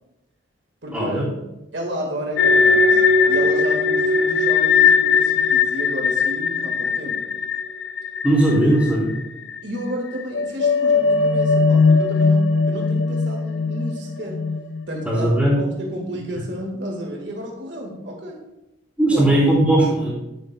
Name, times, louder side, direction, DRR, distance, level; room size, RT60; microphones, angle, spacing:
voice 1, 0.9-1.2 8.2-9.1 15.0-15.5 19.0-20.2, right 1 dB, 5° right, -11 dB, 2.9 m, -18 dB
voice 2, 1.7-7.2 9.6-14.4 14.9-18.4 19.1-19.3, equal, 65° right, 0 dB, 1.8 m, -31 dB
sound 1, 2.4-9.2 9.5-9.6 10.2-15.5, left 4 dB, 75° left, 0.4 m, -19 dB
11.0 x 9.6 x 2.3 m, 0.92 s
head